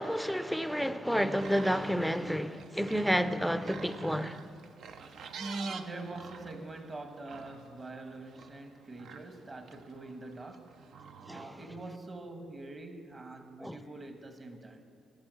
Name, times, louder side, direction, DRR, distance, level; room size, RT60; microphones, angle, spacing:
voice 1, 0.0-4.4 11.3-11.5 13.6-13.8, equal, ahead, 0.5 m, -30 dB
sound 1, 1.1-11.9, right 6 dB, 70° right, 0.6 m, -49 dB
voice 2, 5.4-10.8 11.3-14.9, right 2 dB, 35° right, 1.3 m, -43 dB
14.5 x 6.1 x 7.6 m
cardioid pair, 90°, 0 cm